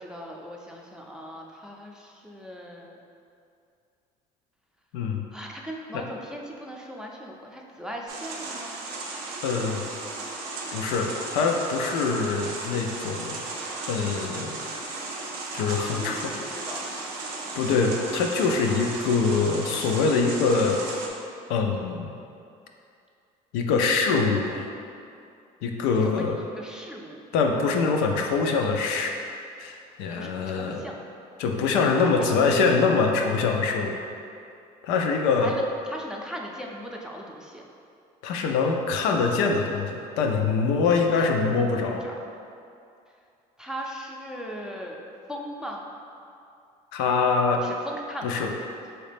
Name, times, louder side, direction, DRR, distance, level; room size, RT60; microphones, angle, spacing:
voice 1, 0.0-3.0 5.3-8.8 15.8-16.9 26.0-27.2 30.2-31.0 32.0-32.1 35.4-37.6 41.0-41.3 41.6-42.1 43.6-45.0 45.3-45.8 47.5-48.4 48.7-48.8, equal, 5° right, -1 dB, 0.5 m, -38 dB
voice 2, 4.9-5.2 5.9-6.0 9.4-9.8 10.7-13.4 13.9-14.6 15.5-16.3 17.6-20.8 21.5-22.1 23.5-24.7 25.6-26.4 27.3-29.1 29.6-30.8 31.4-34.0 34.8-35.6 38.2-42.1 46.9-47.6 48.2-48.5, left 4 dB, 75° left, 2 dB, 0.4 m, -24 dB
sound 1, 8.1-21.1, right 3 dB, 75° right, 0.6 m, -35 dB
4.0 x 2.8 x 3.4 m, 2.5 s
hypercardioid pair, 65°, 19 cm